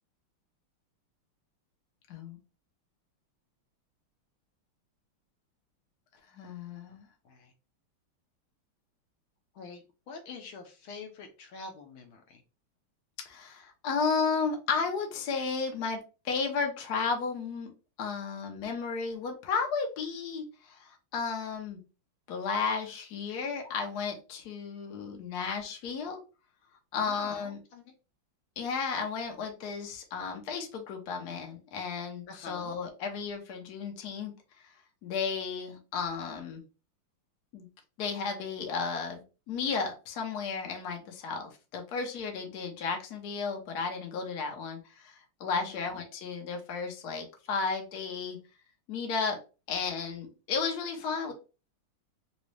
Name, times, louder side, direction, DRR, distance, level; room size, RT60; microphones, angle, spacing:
voice 1, 2.1-2.4 6.3-7.1 13.3-17.7 18.0-21.8 22.3-26.2 26.9-27.6 28.6-34.7 35.0-36.6 37.5-37.7 38.0-39.2 39.5-48.4 48.9-49.4 49.7-51.3, left 5 dB, 60° left, 2 dB, 1.1 m, -33 dB
voice 2, 9.5-12.4 27.0-27.8 32.3-32.7 45.5-46.0, left 4 dB, 75° left, 4 dB, 1.4 m, -46 dB
4.0 x 2.2 x 3.1 m, 0.32 s
omnidirectional pair, 2.4 m